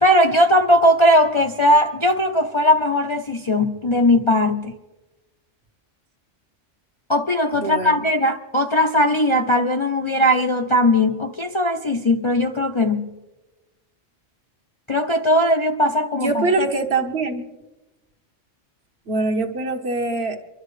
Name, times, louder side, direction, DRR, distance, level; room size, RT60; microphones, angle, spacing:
voice 1, 0.0-4.7 7.1-13.1 14.9-16.4, left 1 dB, 35° left, 0.5 m, -18 dB
voice 2, 7.5-8.0 16.2-17.4 19.1-20.4, right 3 dB, 55° right, 1.4 m, -23 dB
24.5 x 12.5 x 3.2 m
omnidirectional pair, 1.3 m